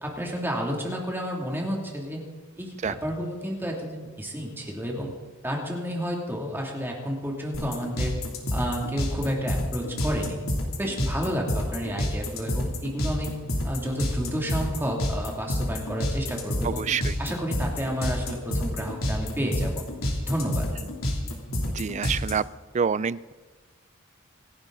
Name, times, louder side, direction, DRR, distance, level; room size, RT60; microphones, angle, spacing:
voice 1, 0.0-2.2 2.6-5.1 5.4-8.1 8.5-10.4 10.8-13.3 13.6-16.8 17.2-19.9 20.2-20.7, equal, 10° right, -1 dB, 2.7 m, -30 dB
sound 1, 7.5-22.3, left 1 dB, 90° left, 3.0 m, -28 dB
voice 2, 16.6-17.2 21.7-22.4 22.7-23.3, right 6 dB, 35° right, 19 dB, 0.4 m, -27 dB
26.5 x 11.5 x 4.0 m, 1.3 s
head